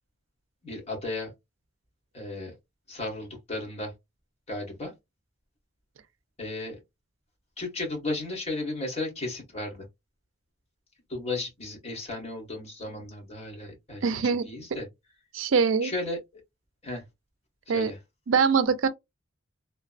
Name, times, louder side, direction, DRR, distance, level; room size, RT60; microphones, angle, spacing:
voice 1, 0.6-1.3 2.1-2.5 2.9-3.9 4.5-4.9 6.4-6.8 7.6-9.9 11.1-14.0 14.4-14.9 15.8-16.2 16.8-17.0 17.7-18.0, left 2 dB, 35° left, 1.6 m, -34 dB
voice 2, 14.0-14.5 15.3-15.9 17.7-17.9 18.3-18.9, right 5 dB, 80° right, 0.5 m, -23 dB
3.2 x 2.1 x 2.5 m
head